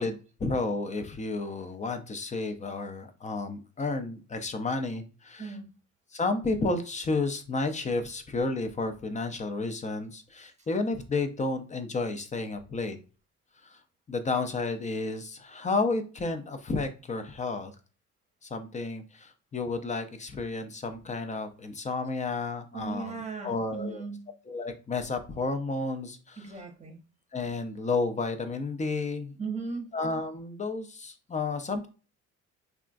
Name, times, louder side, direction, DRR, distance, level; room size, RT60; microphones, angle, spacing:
voice 1, 0.0-5.5 6.1-13.0 13.6-13.8 14.1-17.7 18.4-24.0 24.5-26.4 27.3-29.3 29.9-31.9, left 3 dB, 25° left, 8 dB, 0.5 m, -31 dB
voice 2, 22.7-24.3 26.4-27.0 29.4-29.9, right 4 dB, 25° right, 3 dB, 0.8 m, -37 dB
3.5 x 2.3 x 2.5 m, 0.36 s
cardioid pair, 90°, 30 cm